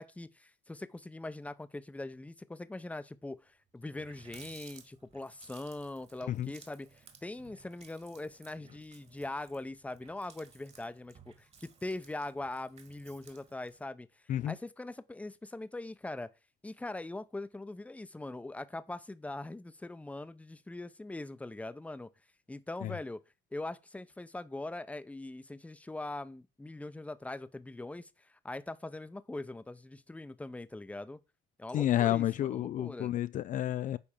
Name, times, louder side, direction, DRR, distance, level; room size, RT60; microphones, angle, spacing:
voice 1, 0.0-14.1 14.4-16.3 16.6-22.1 22.5-23.2 23.5-31.2 31.6-33.1, left 2 dB, 10° left, 0.7 m, -42 dB
Water tap faucet, 3.4-3.5 3.8-13.9, right 6 dB, 40° right, 1.9 m, -58 dB
voice 2, 31.7-34.0, left 12 dB, 50° left, 0.4 m, -30 dB
9.8 x 3.6 x 7.1 m
cardioid pair, 110°, 17 cm